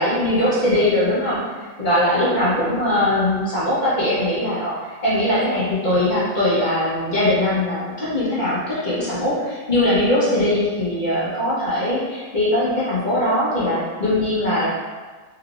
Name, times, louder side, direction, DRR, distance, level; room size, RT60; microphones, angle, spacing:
voice 1, 0.0-1.4 1.8-4.7 5.0-14.7, left 1 dB, 35° left, -10 dB, 1.5 m, -20 dB
4.3 x 3.4 x 2.5 m, 1.4 s
omnidirectional pair, 1.5 m